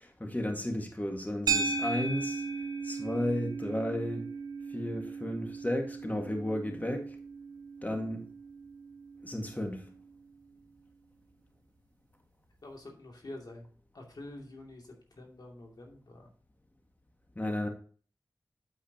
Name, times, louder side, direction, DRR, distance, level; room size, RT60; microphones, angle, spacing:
voice 1, 0.0-2.4 2.8-4.3 4.7-7.1 7.8-8.3 9.2-9.9 17.4-17.7, left 1 dB, 25° left, 1.8 m, -33 dB
sound 1, 1.5-9.9, right 4 dB, 85° right, 1.7 m, -37 dB
voice 2, 12.6-13.7 13.9-14.9 15.1-16.3, left 1 dB, 75° left, 2.6 m, -47 dB
8.7 x 8.0 x 2.9 m
cardioid pair, 45°, 7 cm